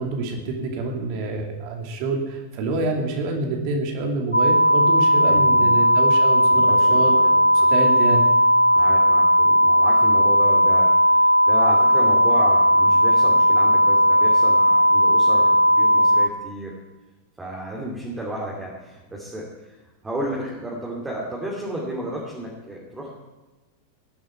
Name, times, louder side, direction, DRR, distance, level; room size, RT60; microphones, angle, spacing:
voice 1, 0.0-7.2 7.5-8.3, right 2 dB, 45° right, 2 dB, 2.7 m, -27 dB
sound 1, 4.3-16.3, equal, 85° left, 0.5 m, -16 dB
voice 2, 5.2-5.7 6.5-7.7 8.8-16.7 17.4-19.7 20.0-23.1, right 1 dB, 10° right, -4 dB, 2.8 m, -33 dB
18.5 x 11.0 x 4.6 m, 1.2 s
figure-of-eight pair, 90°, 0 cm